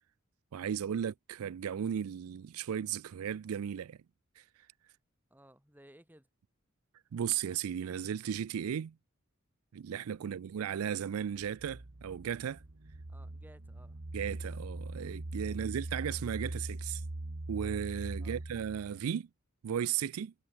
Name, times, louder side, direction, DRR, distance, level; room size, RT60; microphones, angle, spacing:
voice 1, 0.5-4.0 4.4-4.5 7.1-8.9 9.7-12.6 14.1-17.0 17.5-19.3 19.6-20.3, right 8 dB, 85° right, 0.4 m, -35 dB
voice 2, 5.3-6.3 10.2-10.4 13.1-14.0 15.5-15.7 18.2-18.4, right 1 dB, 10° right, 2.8 m, -59 dB
sound 1, 11.6-19.0, right 2 dB, 60° right, 1.3 m, -41 dB
head